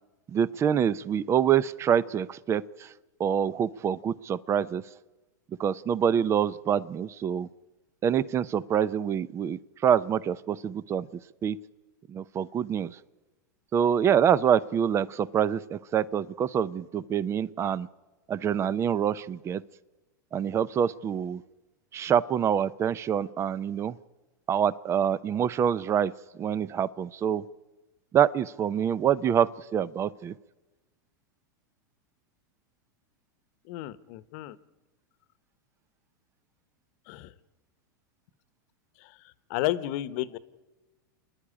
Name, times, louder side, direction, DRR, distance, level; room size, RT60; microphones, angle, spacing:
voice 1, 0.3-2.6 3.2-4.8 5.6-7.5 8.0-11.1 11.4-11.6 12.1-12.9 13.7-17.9 18.3-19.6 20.3-21.4 21.9-23.9 24.5-26.1 26.4-27.4 28.1-30.3, right 8 dB, 25° right, 19 dB, 0.6 m, -26 dB
voice 2, 33.7-34.6 37.1-37.3 39.5-40.4, left 15 dB, 55° left, 15 dB, 1.1 m, -31 dB
29.0 x 10.5 x 9.9 m, 1.2 s
hypercardioid pair, 110°, 11 cm